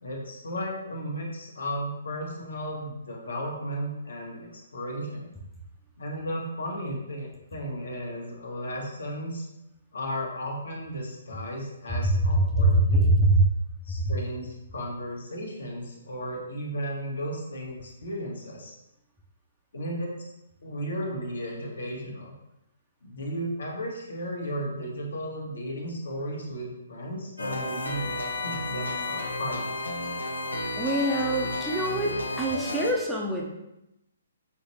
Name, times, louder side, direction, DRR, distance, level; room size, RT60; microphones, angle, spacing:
voice 1, 0.0-5.3 6.0-9.5 9.9-13.1 13.8-18.7 19.7-20.3 20.6-22.3 23.0-28.0 28.4-29.8, equal, 65° left, -1 dB, 1.2 m, -34 dB
voice 2, 12.0-13.5 30.7-33.4, right 1 dB, 5° right, -3 dB, 0.7 m, -23 dB
sound 1, 27.4-32.9, left 2 dB, 80° left, 0.6 m, -32 dB
5.7 x 2.9 x 3.0 m, 0.88 s
figure-of-eight pair, 130°, 0 cm